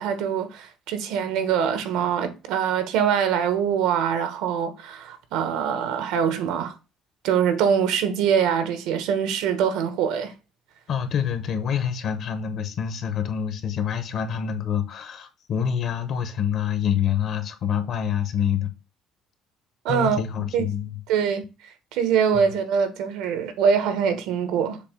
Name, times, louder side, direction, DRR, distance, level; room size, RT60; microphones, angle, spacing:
voice 1, 0.0-6.7 7.2-10.3 19.8-20.2 20.5-20.6 21.1-24.8, right 7 dB, 80° right, 1.1 m, -23 dB
voice 2, 10.9-18.7 19.9-21.0 22.3-22.5, left 8 dB, 45° left, 0.9 m, -26 dB
6.8 x 2.7 x 5.2 m
cardioid pair, 170°, 0 cm